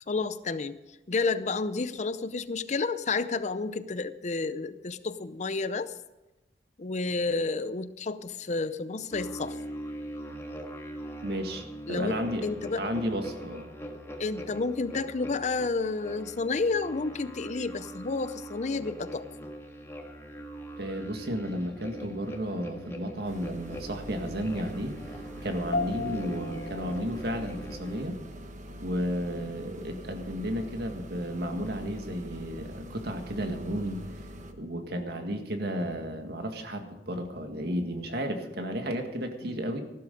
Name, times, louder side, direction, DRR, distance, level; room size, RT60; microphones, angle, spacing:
voice 1, 0.1-0.8 1.1-5.9 6.8-9.6 11.9-12.2 12.4-12.8 14.2-19.3 26.0-26.2 39.4-39.6, left 3 dB, 40° left, 13 dB, 0.6 m, -30 dB
sound 1, 9.1-28.0, right 1 dB, 15° left, 1.6 m, -42 dB
voice 2, 11.2-12.5 12.8-13.7 20.8-25.0 25.4-28.2 28.8-34.1 34.5-39.8, equal, 60° right, 5 dB, 1.9 m, -33 dB
sound 2, 23.2-34.5, equal, 45° right, 1.2 m, -44 dB
sound 3, 25.7-35.3, left 3 dB, 65° left, 1.6 m, -41 dB
15.0 x 12.5 x 5.2 m, 1.0 s
head